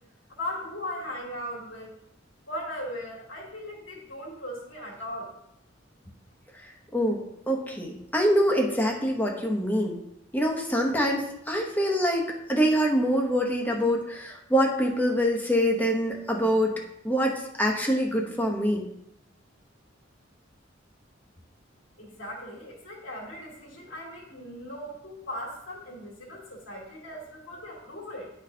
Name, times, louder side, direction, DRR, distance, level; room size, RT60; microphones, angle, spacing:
voice 1, 0.3-1.9 2.5-5.3 22.0-28.3, left 1 dB, 80° left, -3 dB, 2.2 m, -38 dB
voice 2, 7.5-10.0 10.3-12.2 12.5-16.7 17.0-18.8, equal, 10° left, 0 dB, 0.9 m, -25 dB
11.0 x 4.2 x 2.8 m, 0.82 s
head